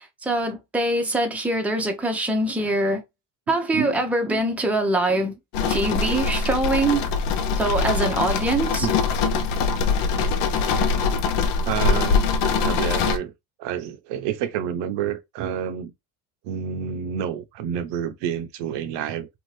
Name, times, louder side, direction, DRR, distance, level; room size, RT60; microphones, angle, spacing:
voice 1, 0.2-3.0 3.5-5.3 5.7-7.0 7.6-8.9, right 1 dB, 5° right, 0.6 m, -23 dB
voice 2, 3.5-4.4 8.8-9.0 11.6-12.3 12.6-13.3 13.6-15.9 16.4-19.3, right 8 dB, 65° right, 0.6 m, -29 dB
sound 1, 5.5-13.2, left 4 dB, 70° left, 0.7 m, -23 dB
2.6 x 2.4 x 3.1 m
supercardioid pair, 95°, 45 cm